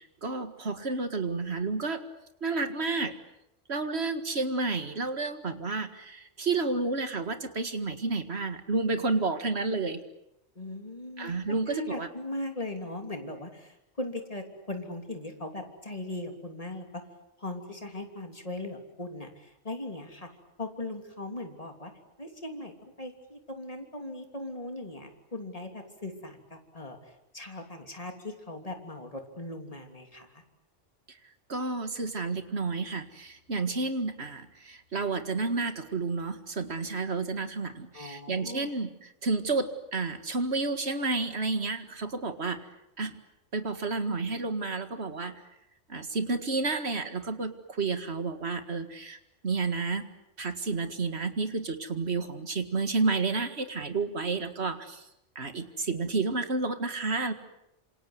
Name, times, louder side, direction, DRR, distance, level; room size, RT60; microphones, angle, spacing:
voice 1, 0.0-2.0 2.4-3.1 3.7-10.0 11.2-12.1 31.1-31.2 31.5-42.7 43.0-43.2 43.5-45.4 45.9-49.2 49.4-50.1 50.4-55.0 55.4-57.3, right 3 dB, 60° right, 9 dB, 2.2 m, -31 dB
voice 2, 10.5-17.0 17.4-20.3 20.6-21.9 22.2-30.4 37.9-38.7, left 2 dB, 30° left, 5 dB, 3.2 m, -39 dB
27.0 x 27.0 x 8.1 m, 0.83 s
omnidirectional pair, 1.3 m